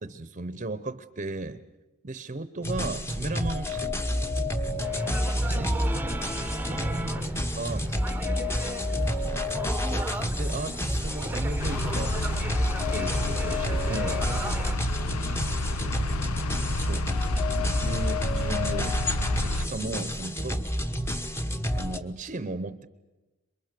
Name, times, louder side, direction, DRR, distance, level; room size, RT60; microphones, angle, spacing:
voice 1, 0.0-1.6 2.0-3.9 5.2-5.7 6.7-7.8 9.8-12.2 12.9-14.2 16.8-17.1 17.8-19.0 19.3-20.6 21.7-22.9, right 2 dB, 35° right, 13 dB, 0.8 m, -35 dB
sound 1, 2.6-22.0, left 1 dB, 10° left, 1.1 m, -29 dB
sound 2, 4.8-14.8, right 1 dB, 10° right, 0.9 m, -37 dB
voice 2, 5.5-9.6 14.9-16.4, equal, 30° left, 4 dB, 5.6 m, -49 dB
sound 3, 11.6-19.7, left 2 dB, 80° left, 0.8 m, -30 dB
27.5 x 23.5 x 6.7 m, 1.1 s
head